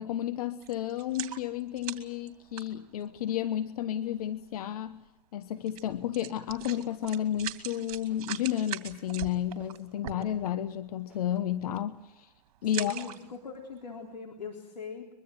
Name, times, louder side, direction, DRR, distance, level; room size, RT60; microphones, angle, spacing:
voice 1, 0.0-5.0 5.3-12.3 12.6-13.1, left 11 dB, 65° left, 12 dB, 1.2 m, -32 dB
sound 1, 0.6-3.3 4.1-4.2 4.5-4.7 5.7-5.8 6.1-10.7 11.2-11.4 11.7-12.0 12.6-13.5 14.0-14.1, right 13 dB, 55° right, 2.8 m, -41 dB
sound 2, 5.9-6.0 6.6-6.7 7.4-7.5 8.1-8.2 8.9-9.0 9.6-9.7 10.4-10.5 11.1-11.2, right 2 dB, 5° right, 4.6 m, -60 dB
voice 2, 12.6-15.1, left 5 dB, 90° left, 3 dB, 3.7 m, -41 dB
24.0 x 23.0 x 7.9 m, 0.88 s
hypercardioid pair, 120°, 21 cm